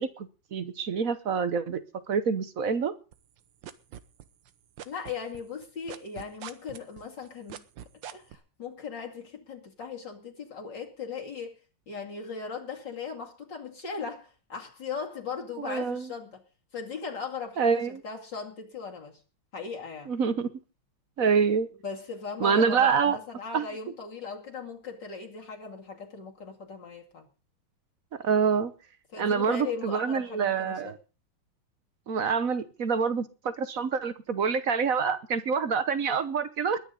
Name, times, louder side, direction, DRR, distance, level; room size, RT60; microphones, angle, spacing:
voice 1, 0.0-1.8 2.1-2.9 15.6-16.1 17.6-17.9 20.1-20.5 21.2-21.7 22.4-23.2 23.5-23.6 28.2-28.7 29.2-30.9 32.1-36.8, right 6 dB, 50° right, 12 dB, 1.2 m, -26 dB
sound 1, 3.1-4.5 4.8-8.4, right 10 dB, 65° right, 1.6 m, -42 dB
voice 2, 4.8-7.6 8.1-11.6 11.9-16.4 16.7-19.2 19.5-20.1 21.8-27.3 29.1-31.0, left 5 dB, 55° left, 0 dB, 3.0 m, -38 dB
21.5 x 10.0 x 3.9 m, 0.34 s
omnidirectional pair, 2.3 m